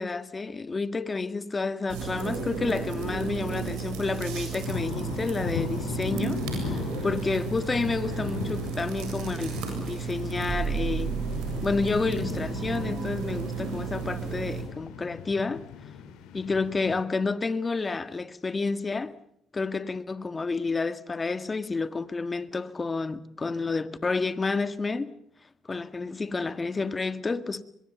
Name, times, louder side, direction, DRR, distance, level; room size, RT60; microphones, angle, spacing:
voice 1, 0.0-11.1 11.6-15.6 16.3-19.1 19.5-25.1 25.7-27.6, left 4 dB, 30° left, 1.8 m, -30 dB
sound 1, 1.9-14.6, right 6 dB, 85° right, 7.7 m, -34 dB
sound 2, 4.7-17.1, left 7 dB, 80° left, 3.1 m, -38 dB
sound 3, 10.5-12.3, right 6 dB, 40° right, 6.5 m, -33 dB
23.5 x 22.5 x 7.1 m
supercardioid pair, 70°, 0 cm